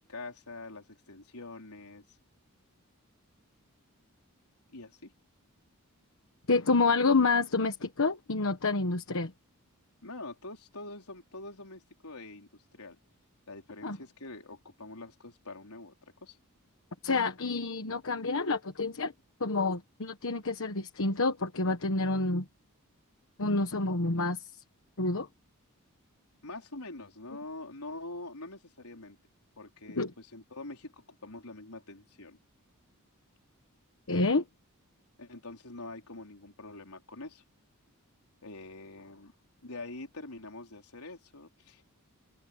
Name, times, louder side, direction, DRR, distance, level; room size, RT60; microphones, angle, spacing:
voice 1, 0.0-2.0 4.7-5.1 10.0-13.0 13.5-15.9 16.2-16.4 26.4-29.2 29.6-32.4 35.2-37.4 38.4-39.3 39.6-41.8, left 2 dB, 80° left, 4.5 m, -45 dB
voice 2, 6.5-9.3 13.8-14.0 17.0-19.1 19.4-22.4 23.4-24.4 25.0-25.3 29.9-30.1 34.1-34.4, left 3 dB, 65° left, 1.2 m, -28 dB
head